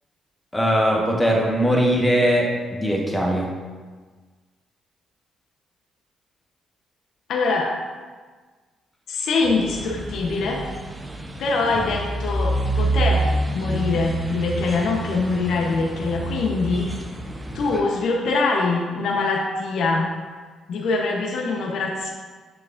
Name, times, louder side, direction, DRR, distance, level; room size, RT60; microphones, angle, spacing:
voice 1, 0.5-3.5, equal, 10° left, -2 dB, 1.2 m, -20 dB
voice 2, 7.3-7.7 9.1-10.6 11.4-16.9 17.5-20.1 20.7-22.1, left 3 dB, 75° left, 0 dB, 0.8 m, -23 dB
sound 1, 9.4-17.8, right 2 dB, 15° right, 0.6 m, -27 dB
9.7 x 4.7 x 2.5 m, 1.4 s
cardioid pair, 90°, 0 cm